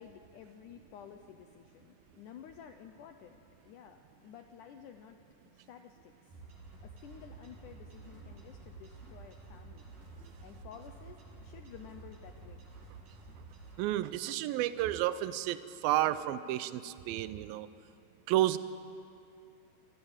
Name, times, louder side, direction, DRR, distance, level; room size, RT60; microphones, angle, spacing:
voice 1, 0.0-5.2 5.5-6.4 6.8-9.9 10.4-12.7, left 8 dB, 80° left, 6 dB, 1.8 m, -52 dB
sound 1, 6.3-13.8, right 3 dB, 55° right, 4.9 m, -51 dB
voice 2, 13.8-17.7 18.3-18.6, right 14 dB, 80° right, 14 dB, 2.2 m, -31 dB
28.0 x 15.5 x 8.9 m, 2.5 s
omnidirectional pair, 4.8 m